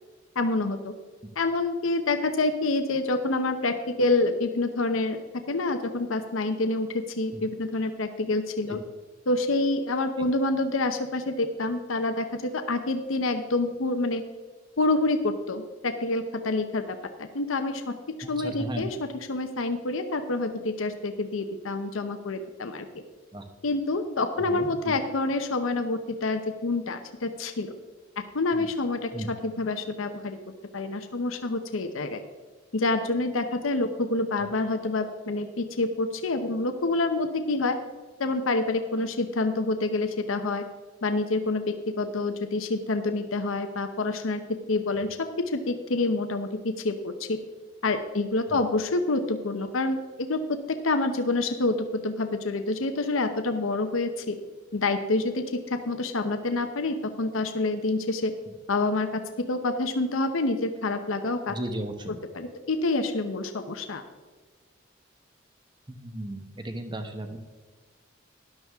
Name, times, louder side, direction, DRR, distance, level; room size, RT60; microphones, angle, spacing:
voice 1, 0.4-0.9 1.4-8.8 9.3-14.2 14.8-17.9 18.3-22.9 23.6-27.7 28.2-30.4 30.7-32.2 32.7-37.8 38.2-40.6 41.0-44.4 44.7-45.1 45.5-47.4 47.8-54.4 54.7-58.3 58.7-61.6 62.3-64.0, left 2 dB, 85° left, 8 dB, 0.8 m, -27 dB
voice 2, 18.2-18.8 23.3-23.4 24.5-24.9 28.5-28.7 29.1-29.3 48.5-48.6 61.5-62.2 65.9-67.4, right 1 dB, 20° right, 6 dB, 1.0 m, -35 dB
13.0 x 11.0 x 3.6 m, 1.4 s
head